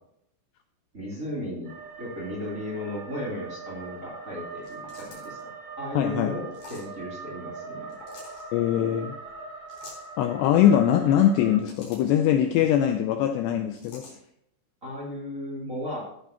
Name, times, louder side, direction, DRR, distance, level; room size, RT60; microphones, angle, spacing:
voice 1, 0.9-1.7 2.0-5.5 5.8-7.9 14.8-16.0, left 1 dB, 20° right, -5 dB, 2.9 m, -35 dB
sound 1, 1.6-11.6, right 4 dB, 80° right, 6.6 m, -42 dB
sound 2, 4.6-5.4 6.5-6.9 7.9-8.4 9.7-10.1 11.3-12.2 13.7-14.2, left 3 dB, 45° left, 5.1 m, -47 dB
voice 2, 6.0-6.4 8.5-9.2 10.2-14.1, left 10 dB, 80° left, 7 dB, 2.5 m, -22 dB
15.0 x 9.5 x 2.9 m, 0.74 s
omnidirectional pair, 5.5 m